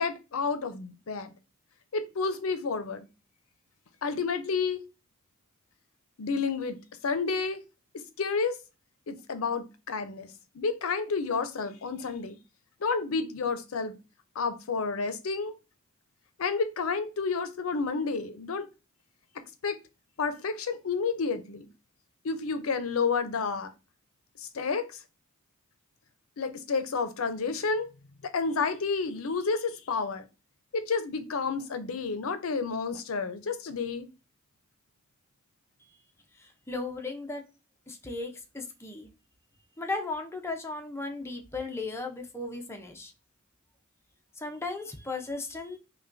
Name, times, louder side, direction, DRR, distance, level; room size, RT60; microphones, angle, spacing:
voice 1, 0.0-1.3 1.9-3.0 4.0-4.8 6.2-6.8 7.0-7.6 8.2-8.6 9.1-10.3 10.5-12.4 12.8-14.0 14.4-15.5 16.4-18.7 19.6-19.8 20.2-21.7 22.2-23.7 24.4-25.0 26.4-27.9 28.3-30.2 30.7-34.1, left 4 dB, 75° left, 0.6 m, -30 dB
voice 2, 36.4-37.4 37.9-39.1 39.8-43.1 44.4-45.8, left 3 dB, 10° left, 0.5 m, -36 dB
5.5 x 2.2 x 2.5 m
head